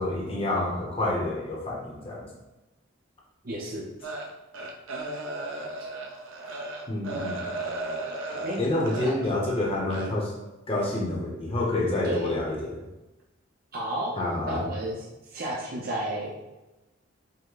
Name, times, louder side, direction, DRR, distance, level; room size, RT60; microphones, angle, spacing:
voice 1, 0.0-2.3 6.9-7.4 8.6-10.3 10.7-12.8 14.2-14.6, left 2 dB, 30° left, -3 dB, 0.8 m, -28 dB
voice 2, 3.4-3.9 8.4-8.6 9.0-9.1 12.0-12.3 13.7-14.1 14.5-15.1 15.3-16.3, right 1 dB, 50° right, -4 dB, 0.7 m, -31 dB
sound 1, 4.0-9.4 9.9-10.1, right 2 dB, 85° right, 0.7 m, -35 dB
5.6 x 2.1 x 3.9 m, 1.0 s
head